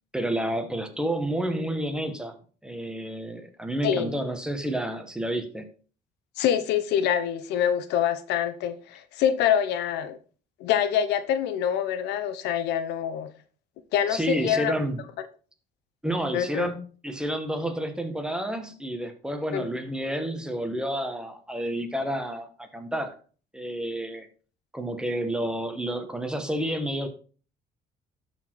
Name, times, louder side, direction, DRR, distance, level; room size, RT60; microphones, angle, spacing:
voice 1, 0.1-5.7 14.1-15.0 16.0-16.8 17.0-23.1 23.5-24.3 24.7-27.1, right 1 dB, 5° right, 1.4 m, -30 dB
voice 2, 6.4-10.2 10.6-13.3 13.9-14.7 16.3-16.7 19.5-19.7, left 9 dB, 85° left, 0.9 m, -25 dB
12.5 x 4.5 x 4.6 m
cardioid pair, 110°, 17 cm